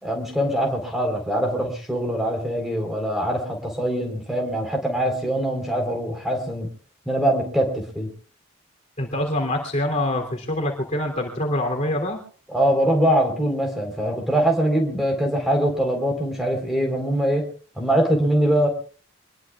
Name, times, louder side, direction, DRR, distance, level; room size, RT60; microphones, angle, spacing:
voice 1, 0.0-6.7 7.1-8.1 12.5-17.5 17.8-18.7, right 1 dB, ahead, 2 dB, 4.0 m, -23 dB
voice 2, 9.0-12.2, left 1 dB, 35° left, 1 dB, 3.1 m, -25 dB
25.0 x 21.0 x 2.4 m, 0.42 s
head